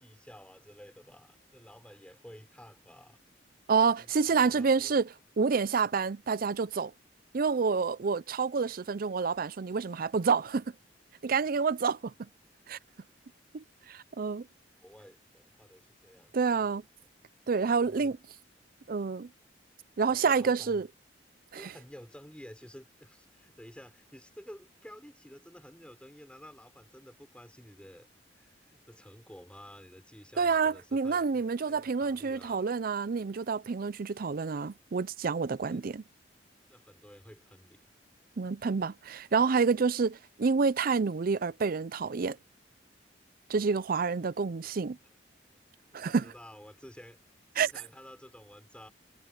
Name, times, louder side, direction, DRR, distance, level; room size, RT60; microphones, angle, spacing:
voice 1, 0.0-3.2 3.8-5.0 14.8-16.7 17.6-18.1 20.2-20.9 21.5-28.1 28.3-32.6 35.7-35.8 36.7-37.8 45.0-45.1 45.9-47.2 47.5-48.9, equal, 5° left, 5.8 m, -52 dB
voice 2, 3.7-5.1 5.4-6.9 7.3-10.6 11.2-12.1 12.7-12.8 13.5-14.5 16.3-16.8 17.5-18.2 18.9-19.3 20.0-20.9 21.5-21.7 30.4-36.0 38.4-42.4 43.5-45.0 45.9-46.3 47.6-47.7, right 5 dB, 50° right, 0.5 m, -28 dB
head